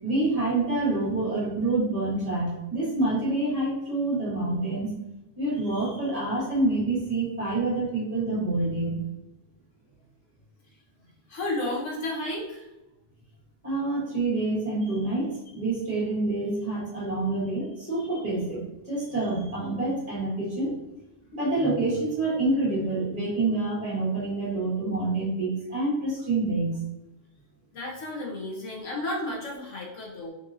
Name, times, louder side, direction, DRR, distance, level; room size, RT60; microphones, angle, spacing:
voice 1, 0.0-4.9 5.4-9.0 13.6-20.8 21.3-26.8, right 2 dB, 30° right, -7 dB, 1.6 m, -27 dB
voice 2, 11.3-12.7 27.7-30.3, left 1 dB, 90° left, -4 dB, 1.5 m, -32 dB
4.4 x 2.8 x 2.7 m, 0.99 s
omnidirectional pair, 1.2 m